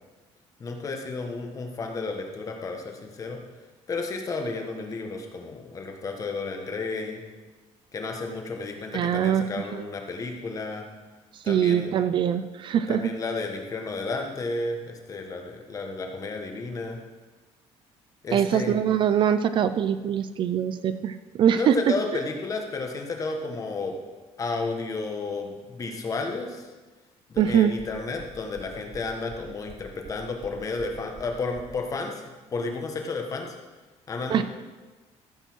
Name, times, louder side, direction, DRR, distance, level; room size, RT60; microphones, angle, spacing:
voice 1, 0.6-3.4 3.9-7.2 7.9-10.8 11.4-11.9 12.9-17.0 18.2-18.8 21.5-24.0 24.4-26.7 27.3-32.2 32.5-33.5 34.1-34.4, left 3 dB, 30° left, 3 dB, 1.3 m, -32 dB
voice 2, 8.9-9.5 9.7-9.8 11.5-13.1 18.3-21.8 27.4-27.7 34.3-34.4, right 9 dB, 45° right, 12 dB, 0.4 m, -23 dB
sound 1, 27.3-31.8, right 2 dB, 30° right, 0.9 m, -46 dB
14.5 x 5.4 x 6.2 m, 1.3 s
cardioid pair, 165°, 12 cm